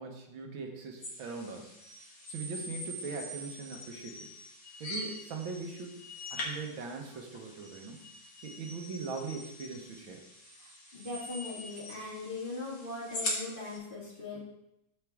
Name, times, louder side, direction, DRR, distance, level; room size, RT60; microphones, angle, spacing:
voice 1, 0.0-1.7 2.3-4.3 4.8-5.9 6.3-8.0 8.4-10.2, right 4 dB, 85° right, 3 dB, 1.9 m, -40 dB
sound 1, 1.0-13.8, left 1 dB, 55° left, 2.2 m, -43 dB
voice 2, 10.6-14.4, left 3 dB, 25° left, -5 dB, 2.2 m, -40 dB
13.0 x 4.5 x 3.6 m, 0.84 s
omnidirectional pair, 2.1 m